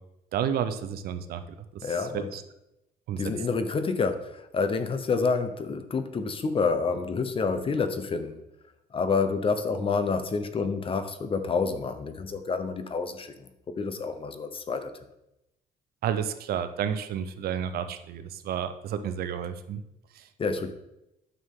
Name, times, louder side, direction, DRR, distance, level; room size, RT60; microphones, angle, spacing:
voice 1, 0.3-1.4 1.7-2.4 3.1-3.2 16.0-19.8 20.1-20.3, right 8 dB, 65° right, 10 dB, 0.8 m, -31 dB
voice 2, 1.8-2.3 3.2-8.4 8.9-14.9 20.4-20.7, left 4 dB, 30° left, 10 dB, 0.8 m, -28 dB
9.4 x 6.3 x 3.7 m, 0.88 s
cardioid pair, 110°, 17 cm